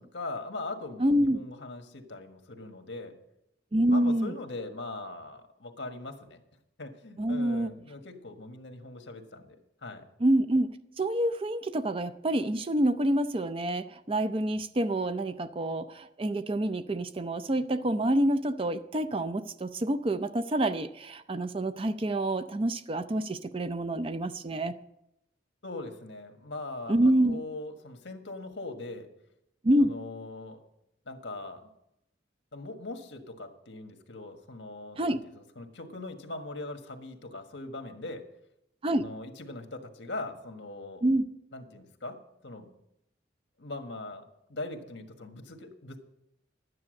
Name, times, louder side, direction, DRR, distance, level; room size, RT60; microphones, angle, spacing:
voice 1, 0.0-3.1 3.9-6.4 6.8-10.1 25.6-29.1 29.8-30.6 31.0-31.7 32.5-38.2 38.9-41.0 41.5-42.7 43.6-46.0, left 2 dB, 75° left, 5 dB, 1.5 m, -41 dB
voice 2, 1.0-1.4 3.7-4.3 7.2-7.7 10.2-24.7 26.9-27.4 29.6-29.9 35.0-35.2 38.8-39.1 41.0-41.2, right 1 dB, 30° right, 11 dB, 0.5 m, -27 dB
12.0 x 9.7 x 6.4 m, 0.82 s
head